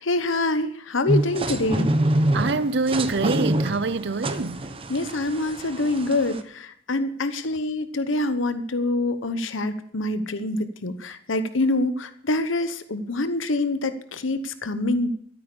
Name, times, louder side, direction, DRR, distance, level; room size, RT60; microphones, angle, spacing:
voice 1, 0.0-1.9 4.9-15.1, left 2 dB, 85° left, 1.1 m, -25 dB
sound 1, 1.1-6.4, right 1 dB, 30° right, 0.9 m, -26 dB
voice 2, 2.3-4.7, right 3 dB, 60° right, 0.6 m, -25 dB
13.5 x 9.1 x 6.9 m
head